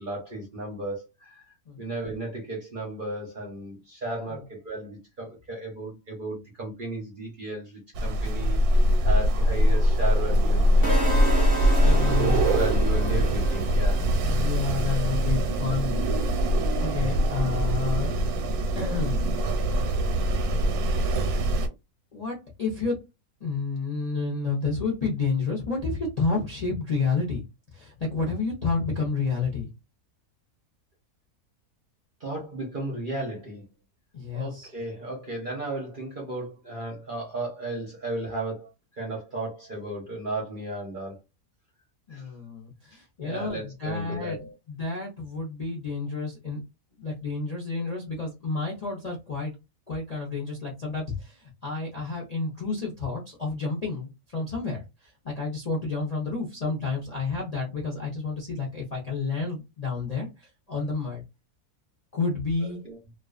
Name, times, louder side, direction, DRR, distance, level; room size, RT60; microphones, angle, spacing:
voice 1, 0.0-1.4 1.8-11.2 11.8-14.0 32.2-33.6 34.3-38.7 39.0-41.2 42.1-42.3 42.9-44.5 62.8-63.0, right 2 dB, 50° right, 0.6 m, -34 dB
Wind, 7.9-21.7, equal, 85° right, 1.1 m, -23 dB
sound 1, 10.8-14.9, right 1 dB, 15° left, 0.9 m, -33 dB
voice 2, 11.8-12.6 14.2-16.1 16.4-18.2 18.7-19.3 22.1-22.9 23.4-27.4 27.7-29.7 34.1-34.7 42.1-46.6 47.0-49.5 49.9-61.2 62.1-62.8, left 4 dB, 45° left, 0.5 m, -30 dB
2.4 x 2.3 x 2.3 m
omnidirectional pair, 1.6 m